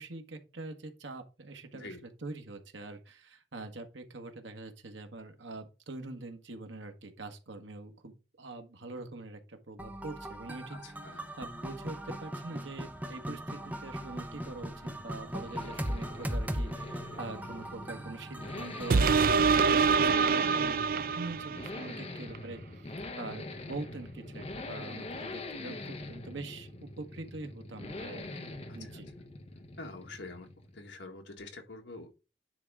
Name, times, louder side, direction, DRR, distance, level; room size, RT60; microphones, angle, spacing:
voice 1, 0.0-10.8 11.1-22.6 23.2-29.1, right 2 dB, 85° right, 5 dB, 1.5 m, -44 dB
sound 1, 9.8-19.0, equal, 10° right, 1.0 m, -39 dB
voice 2, 10.7-11.3 28.7-29.0 29.8-30.5 30.7-32.3, left 3 dB, 70° left, 3 dB, 1.9 m, -46 dB
sound 2, 13.0-30.9, left 2 dB, 35° left, 0.9 m, -44 dB
sound 3, 18.9-21.8 22.4-22.5, right 5 dB, 50° right, 0.4 m, -25 dB
9.9 x 3.7 x 4.7 m, 0.30 s
head